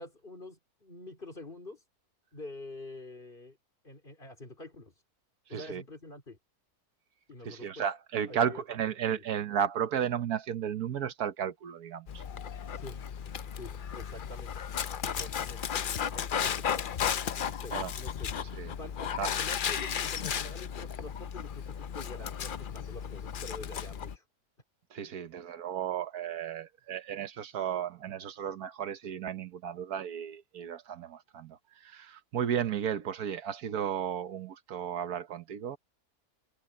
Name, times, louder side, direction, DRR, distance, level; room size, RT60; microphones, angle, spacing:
voice 1, 0.0-1.8 2.3-3.6 3.8-4.9 5.5-6.4 7.3-7.9 8.3-8.6 9.1-9.2 12.7-13.1 13.5-14.6 15.0-15.6 16.1-16.9 17.3-18.3 18.8-24.2, left 2 dB, 35° left, 3.8 m, -46 dB
voice 2, 7.4-12.2 17.7-17.9 18.5-18.7 19.2-19.3 24.9-35.8, right 8 dB, 75° right, 1.5 m, -34 dB
Dog, 12.1-24.2, left 8 dB, 60° left, 0.5 m, -34 dB
omnidirectional pair, 1.6 m